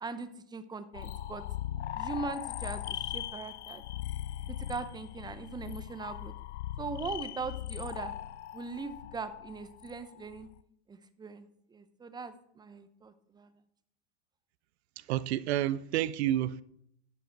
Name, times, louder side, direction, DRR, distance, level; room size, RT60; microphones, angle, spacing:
voice 1, 0.0-1.4 1.9-3.8 4.5-6.3 6.8-8.1 8.5-10.5 10.9-13.5, right 4 dB, 10° right, 0.8 m, -40 dB
sound 1, 0.9-10.6, left 12 dB, 90° left, 0.6 m, -39 dB
voice 2, 15.0-16.6, right 13 dB, 70° right, 0.6 m, -30 dB
12.0 x 7.0 x 4.6 m
hypercardioid pair, 120°, 34 cm